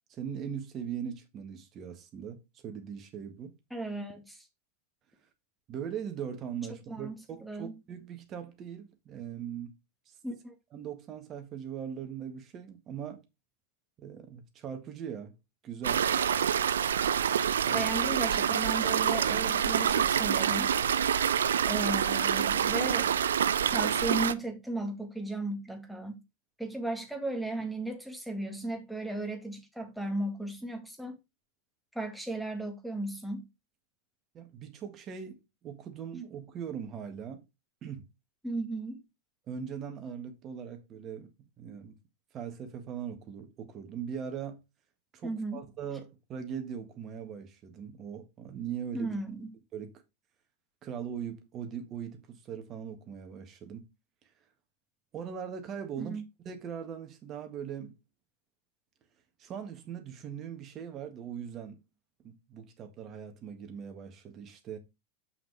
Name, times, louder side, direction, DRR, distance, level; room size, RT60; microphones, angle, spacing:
voice 1, 0.1-3.5 5.7-9.7 10.7-13.2 14.0-15.3 15.6-16.1 17.6-17.9 34.3-37.4 37.8-38.0 39.5-41.3 41.6-41.9 42.3-44.6 45.1-49.2 49.7-49.9 50.8-53.8 55.1-57.9 59.4-61.8 62.2-64.8, right 8 dB, 30° right, 1.7 m, -40 dB
voice 2, 3.7-4.4 6.7-7.8 10.2-10.5 17.7-20.8 21.6-23.1 23.7-26.2 26.6-31.2 32.0-33.5 38.4-39.0 45.2-45.6 48.9-49.5 56.0-56.2, right 2 dB, ahead, 1.9 m, -35 dB
sound 1, 15.8-24.3, right 8 dB, 65° right, 0.5 m, -27 dB
7.3 x 5.8 x 3.4 m
figure-of-eight pair, 90°, 0 cm